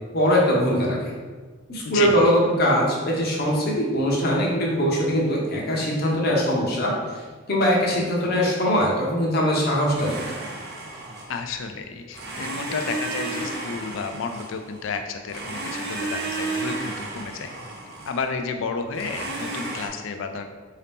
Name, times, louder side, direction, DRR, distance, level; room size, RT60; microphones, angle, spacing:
voice 1, 0.1-1.2 1.7-10.4, equal, 55° left, -3 dB, 0.8 m, -22 dB
voice 2, 1.8-2.3 11.3-17.5 18.1-20.4, left 5 dB, 75° left, 6 dB, 0.4 m, -31 dB
Domestic sounds home sounds, 9.9-11.6 12.1-14.9 15.3-18.3 18.9-19.9, right 2 dB, 55° right, 0.8 m, -33 dB
3.9 x 2.8 x 3.4 m, 1.5 s
head